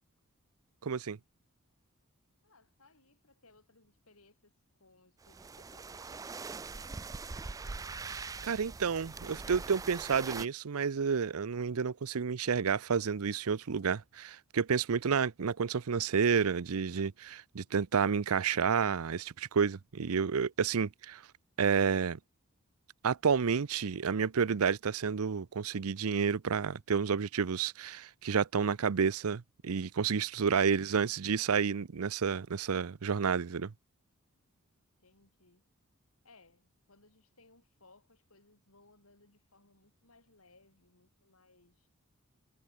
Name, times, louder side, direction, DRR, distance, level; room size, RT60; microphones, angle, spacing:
voice 1, 0.8-1.2 8.1-21.2 21.6-22.2 23.0-33.7, right 6 dB, 75° right, 0.6 m, -30 dB
voice 2, 2.4-4.5 4.8-6.4 6.8-7.8 30.6-31.4 35.0-35.6 36.2-41.9, left 3 dB, 70° left, 7.2 m, -64 dB
sound 1, 5.2-10.5, right 4 dB, 15° right, 0.3 m, -42 dB
head